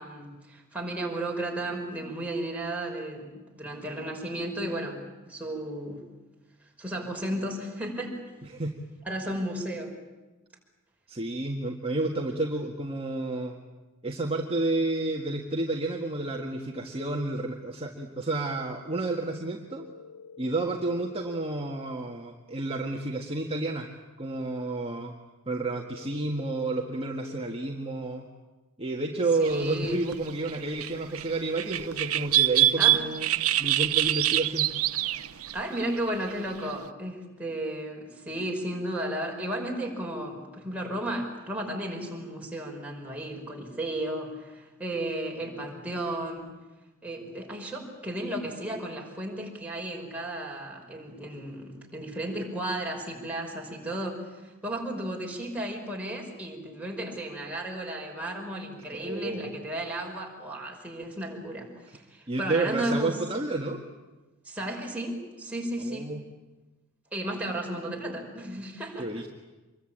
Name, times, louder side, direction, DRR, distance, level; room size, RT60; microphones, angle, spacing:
voice 1, 0.0-5.0 5.3-6.0 6.8-8.2 9.1-9.9 29.4-30.0 32.8-33.0 35.5-46.5 47.0-63.1 64.4-66.1 67.1-69.1, right 1 dB, 5° right, -1 dB, 5.4 m, -34 dB
voice 2, 11.1-13.6 14.0-19.9 20.4-23.9 24.2-25.1 25.5-28.3 28.8-34.7 58.9-59.5 62.3-63.8 65.9-66.2 69.0-69.3, right 2 dB, 25° right, 0 dB, 1.8 m, -30 dB
sound 1, 19.8-21.7 25.7-27.7 31.7-32.5, left 5 dB, 65° left, 4.1 m, -48 dB
sound 2, 29.4-29.7 30.1-30.2 30.5-31.3 31.6-36.0 36.3-36.5, right 13 dB, 90° right, 0.9 m, -25 dB
26.0 x 22.5 x 8.9 m, 1.2 s
head